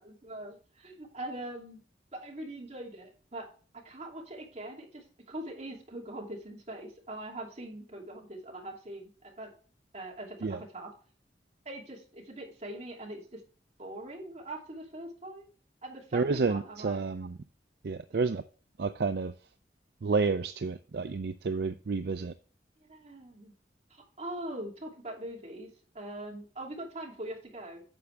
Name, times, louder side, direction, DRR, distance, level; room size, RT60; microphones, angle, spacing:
voice 1, 0.0-1.8 2.1-3.5 3.7-9.5 9.9-10.9 11.6-13.4 13.8-15.5 15.8-17.0 18.1-18.2 22.8-23.5 23.9-25.7 25.9-27.8, right 1 dB, 35° right, 2.7 m, -42 dB
voice 2, 16.1-17.3 17.8-18.4 18.8-19.3 20.0-22.3, right 4 dB, 60° right, 0.4 m, -30 dB
9.3 x 7.0 x 3.3 m
head